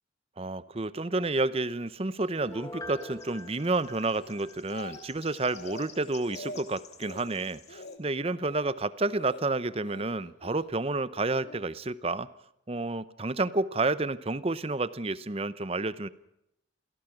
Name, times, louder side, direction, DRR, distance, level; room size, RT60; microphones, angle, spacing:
voice 1, 0.4-12.3 12.7-16.1, right 2 dB, 30° right, 16 dB, 0.7 m, -30 dB
sound 1, 1.8-8.0, left 7 dB, 35° left, 2.2 m, -54 dB
Piano, 2.4-5.1 5.5-5.6, left 1 dB, 20° left, 1.2 m, -44 dB
Speech, 4.2-5.2 5.5-5.9 6.2-6.6 7.0-7.3 7.7-8.0 8.3-8.7 9.1-9.4 9.8-10.7 11.4-11.7, left 1 dB, 60° left, 2.1 m, -44 dB
27.5 x 17.0 x 6.0 m, 0.79 s
head